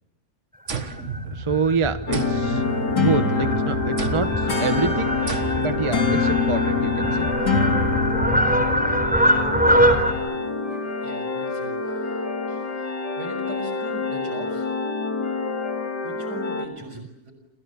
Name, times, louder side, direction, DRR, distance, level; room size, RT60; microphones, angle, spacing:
Fowl, 0.7-10.1, equal, 5° right, 4.4 m, -24 dB
sound 1, 0.7-1.7 2.1-3.4 4.0-4.5 5.3-5.9, right 5 dB, 50° right, 1.9 m, -33 dB
voice 1, 1.3-2.6 2.9-7.3 16.9-17.1, right 4 dB, 20° right, 10 dB, 1.1 m, -27 dB
sound 2, 2.1-16.7, left 4 dB, 85° left, 3.7 m, -25 dB
voice 2, 11.0-14.7 16.0-17.3, right 1 dB, 80° right, 7 dB, 7.1 m, -40 dB
28.5 x 28.0 x 7.1 m, 0.85 s
omnidirectional pair, 1.7 m